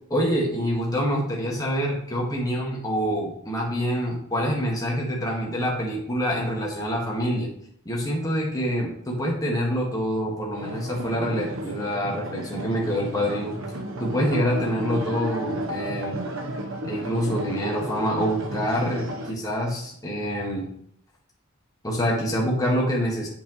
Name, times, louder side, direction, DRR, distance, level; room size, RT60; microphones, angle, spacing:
voice 1, 0.1-7.5 7.8-13.6 14.0-16.2 16.8-20.7 21.8-23.3, equal, 20° left, -3 dB, 1.7 m, -26 dB
sound 1, 10.6-19.3, equal, 70° right, 0.9 m, -33 dB
8.0 x 5.9 x 3.1 m, 0.68 s
head